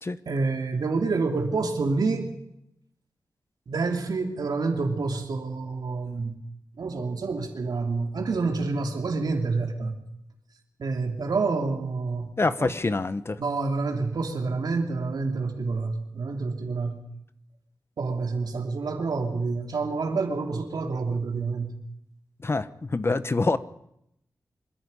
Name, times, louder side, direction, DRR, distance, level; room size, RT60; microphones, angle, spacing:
voice 1, 0.2-2.3 3.7-6.4 6.8-9.9 10.8-12.3 12.6-12.7 13.4-17.0 18.0-21.8, right 4 dB, 75° right, 3 dB, 3.0 m, -28 dB
voice 2, 12.4-13.4 22.4-23.6, left 3 dB, 35° left, 14 dB, 1.0 m, -26 dB
25.5 x 11.0 x 9.8 m, 0.79 s
wide cardioid pair, 70°, 7 cm